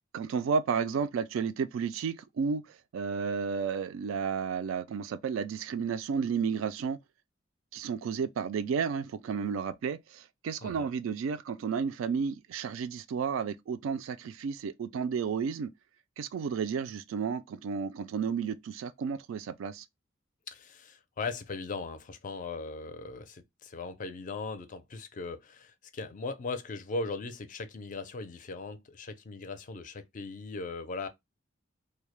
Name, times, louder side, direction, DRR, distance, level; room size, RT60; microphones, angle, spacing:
voice 1, 0.1-2.6 2.9-7.0 7.7-15.7 16.2-19.9, right 6 dB, 85° right, 0.3 m, -32 dB
voice 2, 20.5-31.1, left 3 dB, 40° left, 0.4 m, -39 dB
2.2 x 2.0 x 3.0 m
head